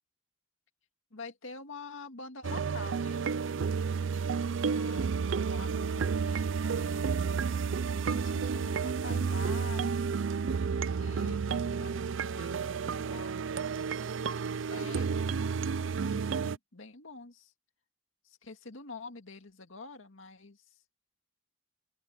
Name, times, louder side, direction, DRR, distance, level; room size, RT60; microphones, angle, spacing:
voice 1, 1.1-3.8 4.6-5.1 5.5-7.1 8.0-10.2 10.9-13.5 14.2-15.5 16.0-17.5 18.2-20.7, left 3 dB, 80° left, 2.0 m, -47 dB
sound 1, 2.4-16.6, right 5 dB, 70° right, 0.4 m, -31 dB
open air
head